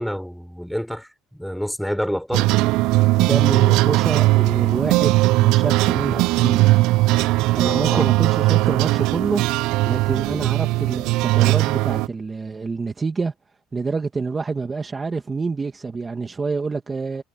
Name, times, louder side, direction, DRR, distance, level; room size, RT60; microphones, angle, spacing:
voice 1, 0.0-2.5 7.6-8.1 10.3-10.5, equal, ahead, 5.1 m, -28 dB
sound 1, 2.3-12.1, right 19 dB, 70° right, 0.3 m, -19 dB
voice 2, 3.2-6.7 7.5-9.4 9.8-13.3 13.7-17.2, right 4 dB, 20° right, 2.1 m, -27 dB
cardioid pair, 125°, 0 cm